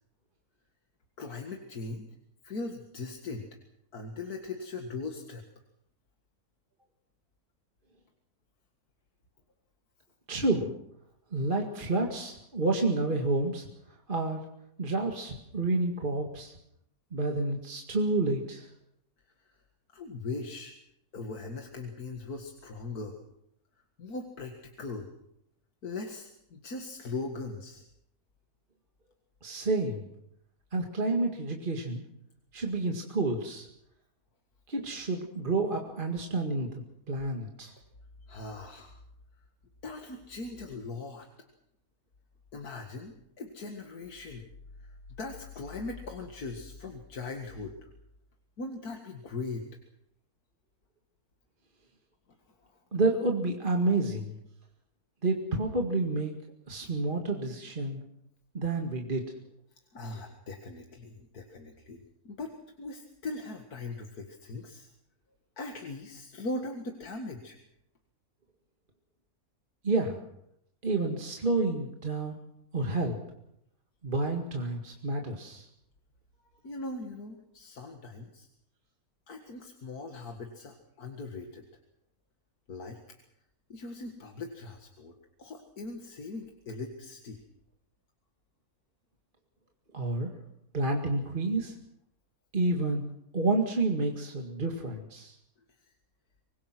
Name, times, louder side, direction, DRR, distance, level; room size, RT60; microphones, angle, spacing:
voice 1, 1.2-2.1 2.4-3.5 3.9-5.4 19.9-20.7 21.1-23.2 24.0-25.1 25.8-27.8 38.3-39.0 39.8-41.3 42.5-44.5 44.8-47.9 48.6-49.7 59.9-62.0 62.2-64.9 65.6-67.6 76.6-78.5 79.3-81.7 82.7-83.0 83.7-87.4 95.8-95.9, left 3 dB, 90° left, 3 dB, 2.4 m, -40 dB
voice 2, 10.3-10.7 11.3-13.7 14.1-14.4 14.8-16.5 17.1-18.7 29.4-30.1 30.7-32.0 32.5-33.7 34.7-36.7 37.1-37.7 52.9-54.4 55.2-56.3 56.7-58.0 58.5-59.3 69.8-70.2 70.8-72.4 72.7-73.2 74.0-75.7 89.9-90.3 90.7-91.7 92.5-93.0 93.3-95.4, right 2 dB, 35° right, 1 dB, 2.2 m, -29 dB
25.5 x 21.0 x 6.1 m, 0.77 s
omnidirectional pair, 1.6 m